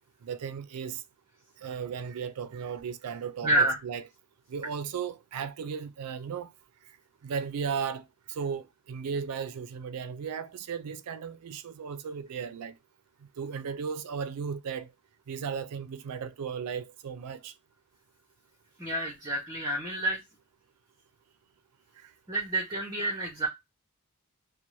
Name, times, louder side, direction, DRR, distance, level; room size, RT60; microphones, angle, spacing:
voice 1, 0.2-1.0 1.6-4.0 4.5-6.5 7.2-12.7 13.4-14.9 15.3-17.5, right 6 dB, 90° right, 0.4 m, -35 dB
voice 2, 3.4-3.8 18.8-20.2 22.3-23.5, right 1 dB, 15° right, 0.8 m, -28 dB
2.6 x 2.0 x 3.0 m
head